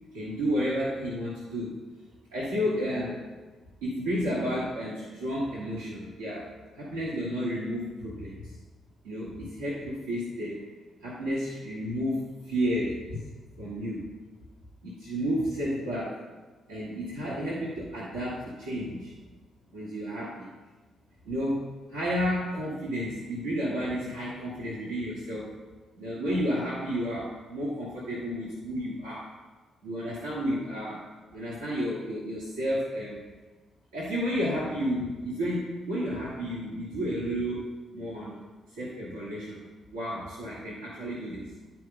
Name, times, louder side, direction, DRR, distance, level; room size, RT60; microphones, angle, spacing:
voice 1, 0.0-1.8 2.3-3.1 3.8-6.5 6.8-8.5 9.0-10.6 11.0-13.2 13.6-14.1 14.8-16.2 16.7-19.1 19.7-20.5 21.2-25.5 26.0-29.3 29.8-31.0 31.3-33.2 33.9-37.7 37.9-38.4 38.7-39.7 39.9-41.5, equal, 90° right, -8 dB, 1.2 m, -31 dB
9.5 x 4.5 x 3.8 m, 1.3 s
hypercardioid pair, 45°, 0 cm